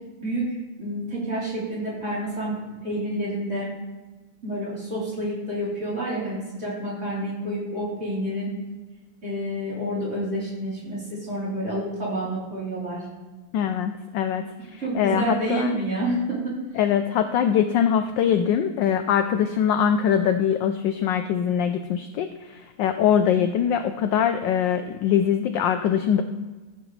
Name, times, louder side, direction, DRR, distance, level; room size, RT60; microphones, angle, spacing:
voice 1, 0.2-3.7 4.4-8.5 9.2-13.1 14.8-16.8, right 1 dB, 30° right, -8 dB, 4.0 m, -29 dB
voice 2, 13.5-14.5 14.7-15.8 16.8-26.2, left 8 dB, 75° left, 8 dB, 1.1 m, -23 dB
14.0 x 8.0 x 3.2 m, 1.3 s
omnidirectional pair, 2.4 m